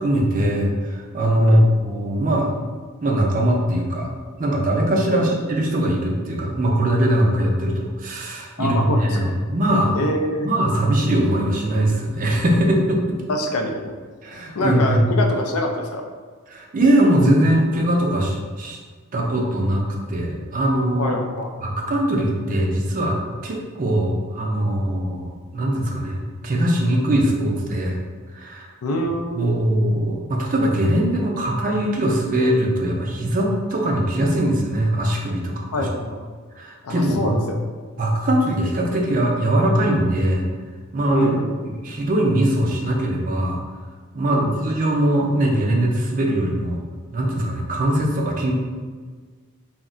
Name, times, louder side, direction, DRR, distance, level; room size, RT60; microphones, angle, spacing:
voice 1, 0.0-2.5 3.0-4.1 4.4-9.9 10.4-13.2 14.2-15.0 16.5-18.8 19.1-21.1 21.6-28.0 28.4-28.7 29.4-35.9 36.6-37.4 38.0-40.5 40.9-41.3 41.6-43.6 44.1-46.8 47.1-48.5, right 1 dB, 40° right, -1 dB, 0.4 m, -21 dB
voice 2, 8.6-9.3 9.9-10.5 13.3-14.0 14.5-16.1 21.0-21.5 28.8-29.4 35.7-36.2 36.8-37.6 41.1-41.6 44.3-44.5, left 1 dB, 75° left, 3 dB, 0.4 m, -25 dB
2.3 x 2.1 x 3.7 m, 1.5 s
head